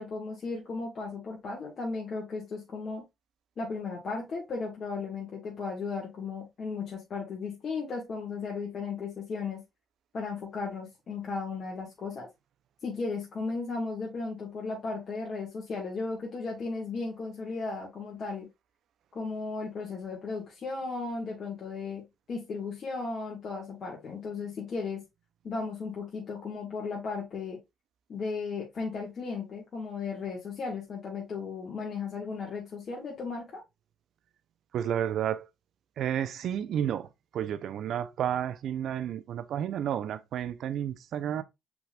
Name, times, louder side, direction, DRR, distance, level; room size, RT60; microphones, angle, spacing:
voice 1, 0.0-3.0 3.6-9.6 10.1-12.3 12.8-18.5 19.1-25.0 25.4-27.6 28.1-33.6, left 4 dB, 55° left, 1.7 m, -35 dB
voice 2, 34.7-35.5 36.0-41.4, right 10 dB, 65° right, 0.5 m, -31 dB
5.8 x 3.8 x 2.4 m
supercardioid pair, 60°, 0 cm